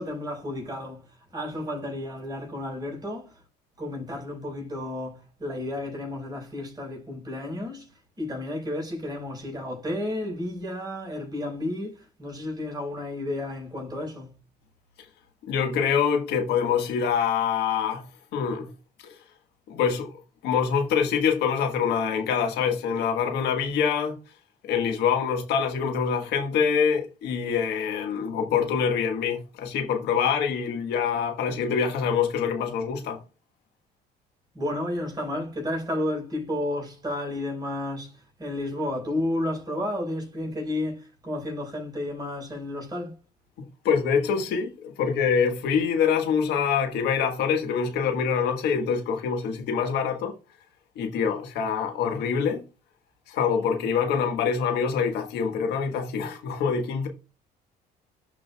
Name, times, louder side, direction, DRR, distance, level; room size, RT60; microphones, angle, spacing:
voice 1, 0.0-3.4 3.8-7.9 8.2-14.4 34.5-43.1, left 1 dB, 25° right, 4.8 m, -32 dB
voice 2, 15.5-18.1 18.3-18.7 19.7-20.1 20.4-24.2 24.6-33.2 43.8-50.3 51.0-52.6 53.3-57.1, left 6 dB, 80° left, 1.4 m, -25 dB
11.5 x 5.0 x 2.3 m
cardioid pair, 110°, 17 cm